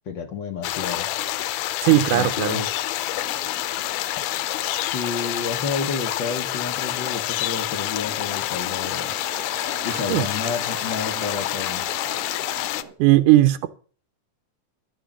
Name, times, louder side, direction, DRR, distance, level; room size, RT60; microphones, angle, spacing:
voice 1, 0.1-1.1 1.9-2.8 4.7-9.1 9.8-11.9, left 5 dB, 65° left, 1.2 m, -31 dB
sound 1, 0.6-12.8, left 14 dB, 85° left, 2.1 m, -27 dB
voice 2, 1.8-2.6 10.1-10.3 13.0-13.7, right 16 dB, 85° right, 2.2 m, -17 dB
sound 2, 3.1-12.9, right 3 dB, 35° right, 1.5 m, -42 dB
11.5 x 6.4 x 7.1 m
omnidirectional pair, 3.6 m